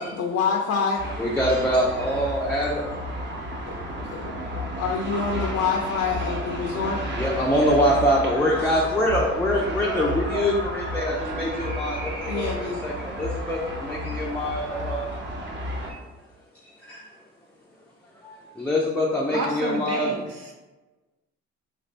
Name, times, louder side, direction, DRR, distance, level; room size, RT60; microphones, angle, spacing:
voice 1, 0.0-1.0 3.7-4.3 4.8-7.0 12.3-12.9, left 5 dB, 70° left, 0 dB, 0.5 m, -27 dB
sound 1, 1.0-15.9, equal, 35° right, 0.9 m, -32 dB
voice 2, 1.2-2.8 7.2-15.1 15.9-16.0 16.8-17.0 18.2-20.1, equal, 5° left, -4 dB, 0.4 m, -24 dB
voice 3, 19.2-20.5, right 1 dB, 85° right, -2 dB, 0.9 m, -31 dB
3.5 x 2.6 x 3.2 m, 1.2 s
cardioid pair, 90°, 30 cm